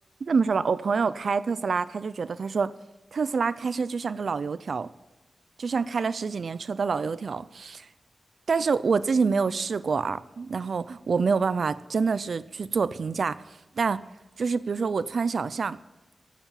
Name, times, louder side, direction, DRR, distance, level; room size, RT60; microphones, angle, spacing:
voice 1, 0.2-2.7 3.1-4.9 5.6-7.9 8.5-13.4 13.8-14.1 14.4-15.8, right 5 dB, 55° right, 16 dB, 0.4 m, -26 dB
14.0 x 7.3 x 7.5 m, 1.1 s
wide cardioid pair, 165°, 0 cm